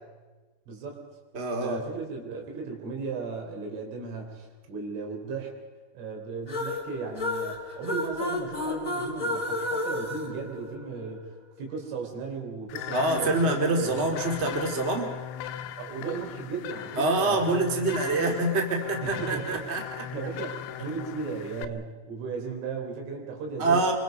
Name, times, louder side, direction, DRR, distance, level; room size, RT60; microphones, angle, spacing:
voice 1, 0.7-1.0 1.6-5.5 5.9-11.3 11.6-14.1 15.8-17.6 17.9-18.3 19.0-19.7 20.1-23.9, right 5 dB, 85° right, 2 dB, 6.1 m, -36 dB
voice 2, 1.3-1.8 12.9-15.1 16.9-20.1 23.6-23.9, right 2 dB, 25° right, 2 dB, 1.6 m, -26 dB
sound 1, 6.5-11.2, left 2 dB, 15° left, 1.5 m, -32 dB
sound 2, 12.7-21.7, left 10 dB, 75° left, 3.0 m, -38 dB
25.5 x 23.5 x 5.3 m, 1.3 s
omnidirectional pair, 5.5 m